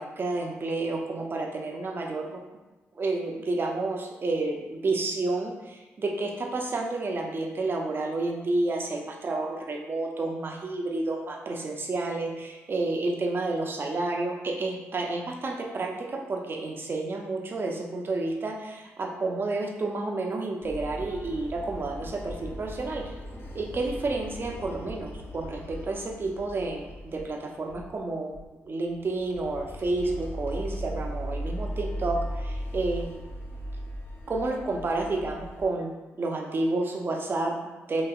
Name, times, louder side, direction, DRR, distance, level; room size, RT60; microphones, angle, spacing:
voice 1, 0.0-2.4 2.9-23.1 23.5-33.1 34.3-38.0, right 2 dB, 45° right, 1 dB, 0.5 m, -30 dB
sound 1, 20.6-27.4 27.7-28.0 28.3-28.5 28.9-35.7, equal, 45° left, 0.6 m, -37 dB
2.9 x 2.8 x 2.3 m, 1.1 s
cardioid pair, 60°, 5 cm